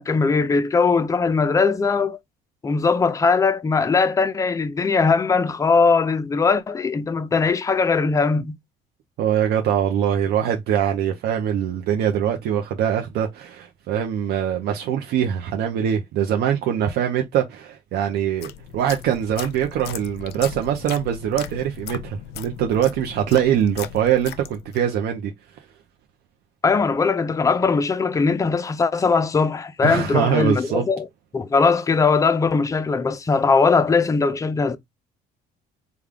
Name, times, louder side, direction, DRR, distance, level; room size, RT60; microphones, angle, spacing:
voice 1, 0.0-2.2 2.6-8.6 26.6-31.1 31.3-34.8, left 4 dB, 20° left, 0.4 m, -20 dB
voice 2, 9.2-25.3 29.8-30.9, right 9 dB, 75° right, 0.6 m, -23 dB
sound 1, 18.2-24.9, left 11 dB, 75° left, 0.4 m, -37 dB
3.5 x 2.2 x 3.5 m
cardioid pair, 110°, 17 cm